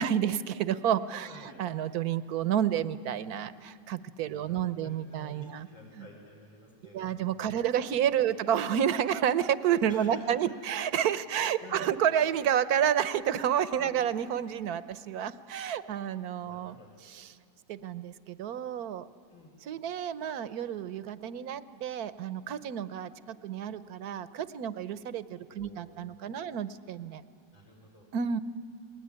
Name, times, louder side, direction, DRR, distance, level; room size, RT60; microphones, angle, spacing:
voice 1, 0.0-5.7 6.0-6.1 6.9-16.8 17.0-17.3 17.7-19.1 19.7-27.2 28.1-28.4, right 9 dB, 60° right, 15 dB, 1.2 m, -30 dB
voice 2, 4.3-7.6 8.2-8.4 9.9-10.5 11.6-11.9 13.8-14.0 16.4-17.0 19.3-19.6 25.4-26.5 27.5-28.1, left 2 dB, 85° left, -3 dB, 5.9 m, -51 dB
29.5 x 20.5 x 9.8 m, 2.6 s
omnidirectional pair, 2.0 m